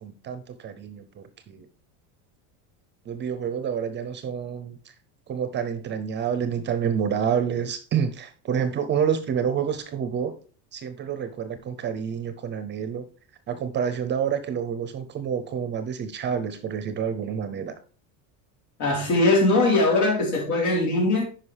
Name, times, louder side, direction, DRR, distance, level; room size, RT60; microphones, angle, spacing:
voice 1, 0.0-1.7 3.1-4.9 5.3-10.3 10.7-13.1 13.5-17.7, right 7 dB, 25° right, 0.5 m, -28 dB
voice 2, 18.8-21.2, left 2 dB, 80° left, 4.1 m, -21 dB
9.8 x 5.2 x 3.3 m
cardioid pair, 145°, 43 cm